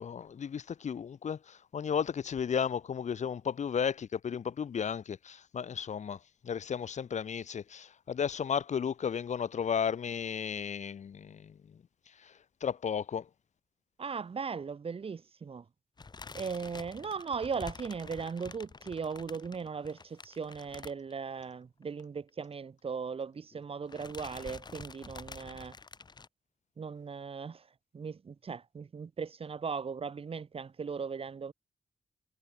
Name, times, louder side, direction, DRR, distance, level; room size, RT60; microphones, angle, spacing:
voice 1, 0.0-6.2 6.4-11.6 12.2-12.3 12.6-13.3, left 7 dB, 60° left, 1.5 m, -34 dB
voice 2, 14.0-15.7 16.3-25.8 26.8-27.7 27.9-31.5, right 5 dB, 45° right, 2.2 m, -38 dB
sound 1, 16.0-21.6 21.8-22.0 22.3-22.4 23.3-23.6 23.9-26.3, left 4 dB, 30° left, 2.5 m, -48 dB
wide cardioid pair, 150°, 13 cm